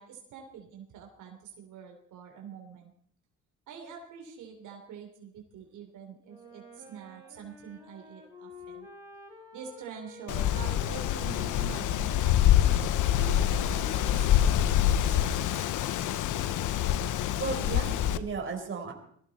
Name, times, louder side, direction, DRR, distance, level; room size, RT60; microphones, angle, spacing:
voice 1, 0.0-2.9 3.7-8.9 9.5-12.4 13.1-15.7, right 6 dB, 85° right, 2 dB, 3.5 m, -46 dB
Wind instrument woodwind instrument, 6.2-14.6, left 2 dB, 10° right, 7.5 m, -50 dB
Wind, 10.3-18.2, left 11 dB, 85° left, 0.9 m, -26 dB
voice 2, 17.4-18.9, right 4 dB, 40° right, 2 dB, 4.5 m, -34 dB
21.0 x 15.5 x 4.3 m, 0.63 s
cardioid pair, 90°, 30 cm